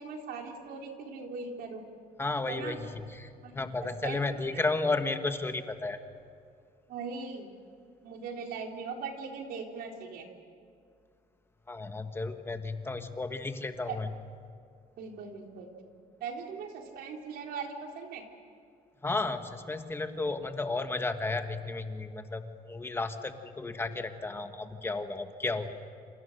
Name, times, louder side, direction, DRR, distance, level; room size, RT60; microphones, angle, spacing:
voice 1, 0.0-1.8 2.5-2.8 3.4-4.2 4.5-4.6 6.9-7.5 8.0-10.2 13.9-14.0 15.0-15.7 16.2-18.2, right 5 dB, 80° right, 2 dB, 3.9 m, -40 dB
voice 2, 2.2-6.0 11.7-14.1 19.0-25.7, left 3 dB, 15° left, 7 dB, 1.4 m, -33 dB
28.0 x 28.0 x 6.6 m, 2.4 s
cardioid pair, 155°, 16 cm